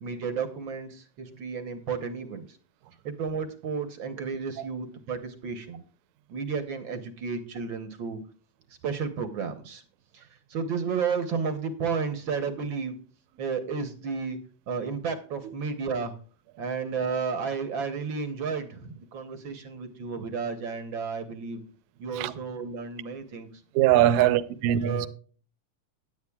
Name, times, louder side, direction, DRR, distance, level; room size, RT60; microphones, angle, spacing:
voice 1, 0.0-2.4 3.0-5.8 6.3-8.2 8.8-9.8 10.1-12.9 13.4-14.4 14.7-16.1 16.6-21.6 22.0-23.5 24.1-24.4 24.8-25.1, right 5 dB, 60° right, 1.2 m, -32 dB
voice 2, 23.7-25.1, right 12 dB, 80° right, 1.9 m, -22 dB
17.0 x 10.0 x 2.3 m
omnidirectional pair, 3.4 m